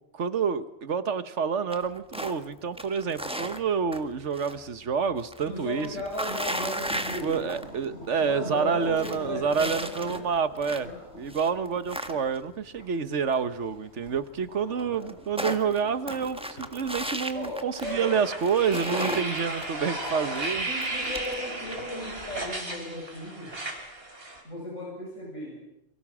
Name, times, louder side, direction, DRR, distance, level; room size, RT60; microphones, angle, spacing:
voice 1, 0.1-5.9 7.2-10.9 11.2-20.7, right 6 dB, 65° right, 12 dB, 1.5 m, -28 dB
sound 1, 1.7-2.4 2.7-4.6 4.9-7.8 8.2-8.3 8.7-10.9 11.3-12.5 14.1-14.2 14.4-14.5 14.8-18.1 18.4-21.4, equal, 5° right, 1.4 m, -35 dB
voice 2, 5.5-7.5 8.2-10.2 10.7-11.1 14.6-15.1 17.3-18.2 18.9-19.3 20.7-23.6 24.4-25.6, left 1 dB, 75° left, -2 dB, 8.0 m, -36 dB
sound 2, 6.7-17.6, equal, 60° left, 5.4 m, -47 dB
sound 3, 17.8-24.4, right 2 dB, 50° right, 4.2 m, -34 dB
29.5 x 23.5 x 6.2 m, 0.83 s
omnidirectional pair, 1.3 m